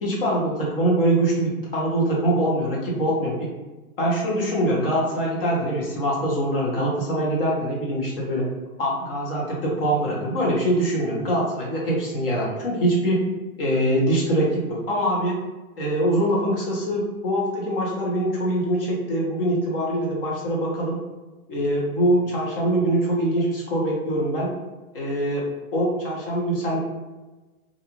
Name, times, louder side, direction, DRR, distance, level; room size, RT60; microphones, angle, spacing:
voice 1, 0.0-3.5 4.0-8.4 8.8-13.2 13.6-15.4 15.8-21.0 21.5-24.5 24.9-25.4 25.7-26.8, right 1 dB, 40° left, -4 dB, 0.8 m, -23 dB
2.5 x 2.2 x 2.9 m, 1.2 s
hypercardioid pair, 160°, 44 cm